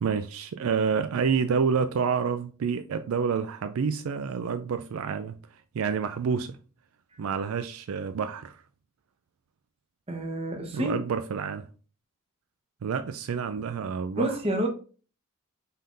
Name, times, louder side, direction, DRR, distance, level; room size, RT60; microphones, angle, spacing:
voice 1, 0.0-5.3 5.7-6.6 7.2-8.6 10.7-11.6 12.8-14.3, right 6 dB, 75° right, 0.4 m, -28 dB
voice 2, 10.1-11.0 14.2-14.7, right 1 dB, 25° right, 1.1 m, -28 dB
5.5 x 3.7 x 2.6 m
head